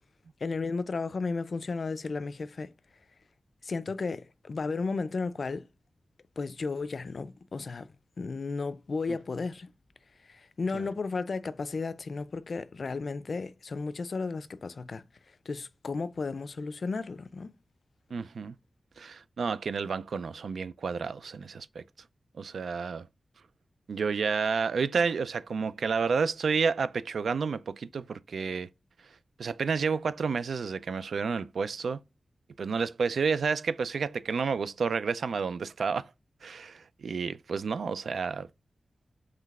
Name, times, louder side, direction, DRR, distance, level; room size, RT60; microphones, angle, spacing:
voice 1, 0.4-2.7 3.6-5.7 6.4-7.9 8.2-9.7 10.2-15.0 15.5-17.5, left 4 dB, 55° left, 0.4 m, -34 dB
voice 2, 18.1-18.5 19.0-21.8 22.4-23.1 23.9-28.7 29.4-32.0 32.6-36.1 36.4-38.5, right 5 dB, 85° right, 0.3 m, -30 dB
5.8 x 3.1 x 2.4 m
wide cardioid pair, 130°, 0 cm